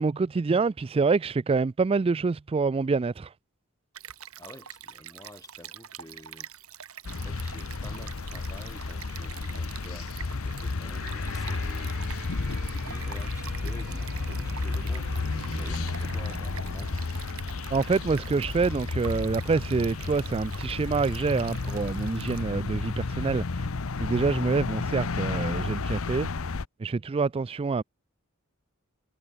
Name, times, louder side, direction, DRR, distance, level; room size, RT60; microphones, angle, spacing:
voice 1, 0.0-3.3 17.7-23.7 24.0-26.3 26.8-27.8, right 4 dB, 25° right, 0.3 m, -26 dB
Stream, 3.9-22.4, right 9 dB, 75° right, 2.5 m, -46 dB
voice 2, 4.4-6.5 7.1-12.1 12.4-15.1 15.5-16.9, left 1 dB, 15° left, 7.5 m, -48 dB
sound 1, 7.0-26.7, left 3 dB, 65° left, 0.8 m, -32 dB
sound 2, 10.9-18.8, right 1 dB, 50° right, 6.2 m, -42 dB
head